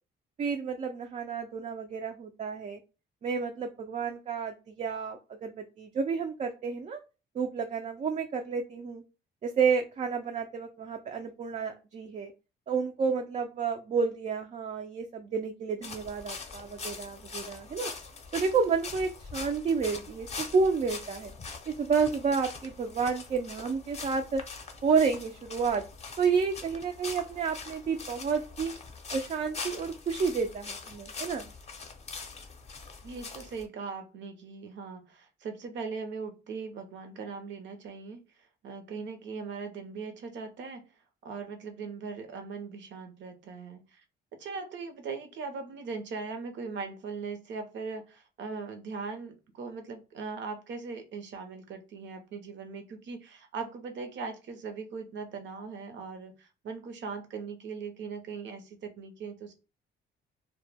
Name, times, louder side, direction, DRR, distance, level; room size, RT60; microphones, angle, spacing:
voice 1, 0.4-2.8 3.2-7.0 7.4-9.0 9.4-12.3 12.7-17.9 18.3-21.3 21.7-24.4 24.8-25.8 26.2-28.7 29.1-31.5, right 5 dB, 35° right, 5 dB, 0.4 m, -30 dB
sound 1, 15.8-33.6, left 4 dB, 35° left, 0.6 m, -43 dB
voice 2, 33.0-38.2 38.6-40.9 41.2-44.0 44.4-59.5, right 5 dB, 70° right, 6 dB, 0.7 m, -40 dB
2.1 x 2.1 x 3.3 m, 0.31 s
cardioid pair, 90°, 20 cm